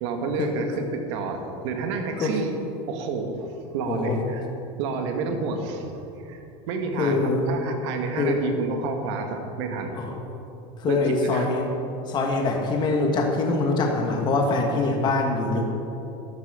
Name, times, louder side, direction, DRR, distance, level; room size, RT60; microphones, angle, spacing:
voice 1, 0.0-2.5 2.9-4.4 4.8-7.2 7.5-10.0 10.9-11.5, right 4 dB, 70° right, 4 dB, 1.7 m, -30 dB
voice 2, 3.9-4.2 7.0-7.5 8.2-8.4 10.0-10.1 10.8-11.6 12.1-15.6, left 3 dB, 30° left, 1 dB, 1.5 m, -23 dB
13.0 x 11.0 x 5.0 m, 2.8 s
supercardioid pair, 150°, 15 cm